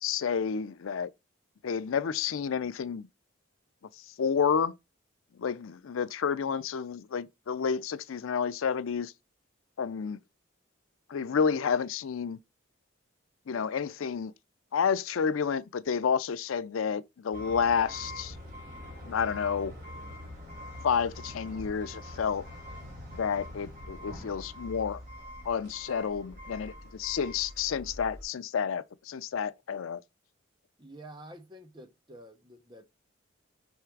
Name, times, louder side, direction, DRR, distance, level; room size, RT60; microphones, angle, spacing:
voice 1, 0.0-1.1 1.6-3.1 4.2-4.7 5.4-9.1 9.8-10.2 11.1-12.4 13.5-14.3 14.7-18.4 19.0-19.7 20.8-22.5 23.1-25.0 25.4-30.0, left 6 dB, 80° left, 0.4 m, -30 dB
sound 1, 17.3-28.2, left 1 dB, 40° right, 3.4 m, -44 dB
voice 2, 30.8-32.8, right 1 dB, 20° right, 0.9 m, -49 dB
5.6 x 3.6 x 4.6 m
head